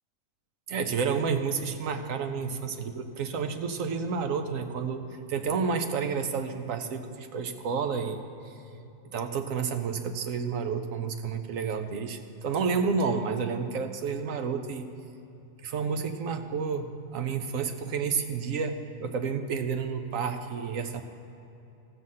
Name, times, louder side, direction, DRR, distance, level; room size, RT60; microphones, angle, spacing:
voice 1, 0.7-5.0 5.3-14.9 15.6-21.0, right 5 dB, 75° right, 7 dB, 1.2 m, -30 dB
14.5 x 7.7 x 5.6 m, 2.8 s
omnidirectional pair, 1.4 m